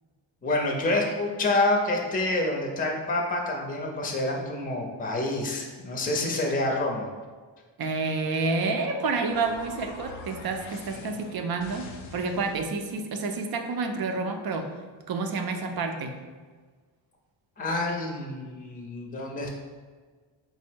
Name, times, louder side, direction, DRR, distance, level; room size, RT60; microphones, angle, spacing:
voice 1, 0.4-7.1 17.6-19.6, left 2 dB, 20° left, 0 dB, 0.6 m, -27 dB
voice 2, 7.8-14.7 15.1-16.2, right 3 dB, 50° right, 5 dB, 0.5 m, -29 dB
sound 1, 8.3-12.9, left 4 dB, 85° left, 0.7 m, -45 dB
4.2 x 2.1 x 4.4 m, 1.5 s
cardioid pair, 100°, 47 cm